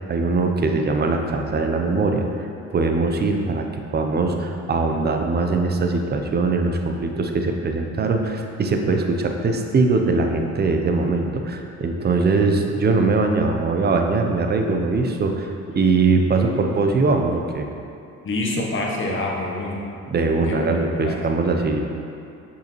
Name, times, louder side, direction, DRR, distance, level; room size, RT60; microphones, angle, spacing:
voice 1, 0.1-2.5 2.7-17.7 20.1-21.8, right 3 dB, 35° right, 4 dB, 0.6 m, -21 dB
voice 2, 18.2-19.8 20.4-21.2, left 2 dB, 40° left, -2 dB, 1.1 m, -27 dB
6.5 x 5.5 x 3.1 m, 2.6 s
cardioid pair, 90°, 30 cm